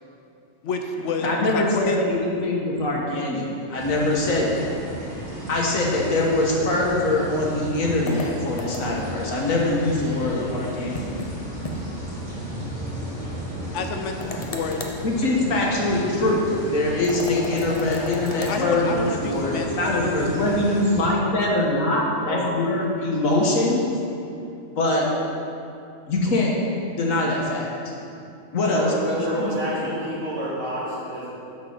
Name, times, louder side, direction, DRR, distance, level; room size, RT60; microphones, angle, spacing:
voice 1, 0.6-2.0 13.7-14.8 18.5-20.8, left 4 dB, 70° left, 4 dB, 0.9 m, -30 dB
voice 2, 1.2-4.8 5.5-11.0 15.0-23.9 24.8-25.1 26.1-26.5 27.0-27.7 28.5-29.5 29.8-29.9, left 2 dB, 85° left, -2 dB, 1.7 m, -23 dB
sound 1, 3.8-21.1, right 1 dB, 50° right, 2.6 m, -35 dB
sound 2, 8.1-9.1 10.9-11.3 11.6-11.8 12.1-12.2 14.2-15.0 17.0-18.6, left 2 dB, 35° left, 0.6 m, -34 dB
voice 3, 28.7-31.3, equal, 65° right, -8 dB, 2.6 m, -28 dB
8.6 x 4.4 x 6.3 m, 2.7 s
omnidirectional pair, 1.4 m